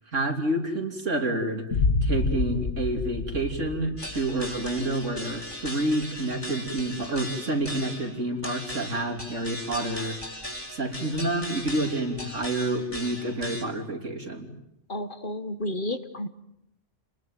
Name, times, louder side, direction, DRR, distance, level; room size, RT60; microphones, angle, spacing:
voice 1, 0.1-1.6 2.0-10.2 10.7-14.5, right 2 dB, 70° right, 4 dB, 3.5 m, -28 dB
sound 1, 1.7-4.7, left 4 dB, 80° left, 1.7 m, -28 dB
sound 2, 4.0-13.6, left 1 dB, 25° left, 4.4 m, -38 dB
voice 2, 14.9-16.3, left 1 dB, 45° left, 11 dB, 1.4 m, -31 dB
29.5 x 20.5 x 9.2 m, 0.83 s
omnidirectional pair, 1.3 m